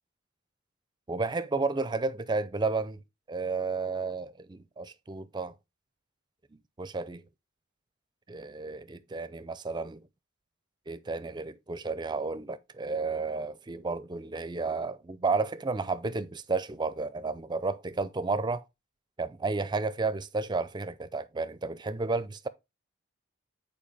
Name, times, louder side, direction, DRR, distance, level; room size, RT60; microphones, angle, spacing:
voice 1, 1.1-3.0 3.3-5.5 6.8-7.2 8.3-10.0 10.9-18.6 19.2-22.5, right 3 dB, 20° right, 0.5 m, -32 dB
7.5 x 4.5 x 3.4 m
head